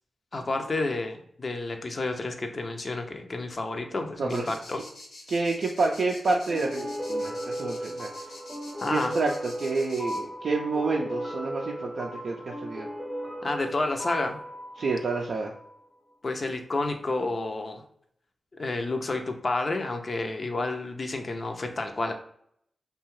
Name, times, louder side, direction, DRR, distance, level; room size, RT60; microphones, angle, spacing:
voice 1, 0.3-4.8 8.8-9.2 13.4-14.4 16.2-17.8 18.5-22.1, left 2 dB, 50° left, 5 dB, 0.5 m, -30 dB
sound 1, 4.3-10.2, left 2 dB, 90° left, 0.8 m, -46 dB
voice 2, 5.3-8.1 8.9-12.9 14.8-15.5, right 3 dB, 70° right, -1 dB, 0.3 m, -28 dB
sound 2, 6.5-15.8, equal, 5° left, 0.5 m, -36 dB
2.7 x 2.2 x 3.0 m, 0.68 s
cardioid pair, 45°, 0 cm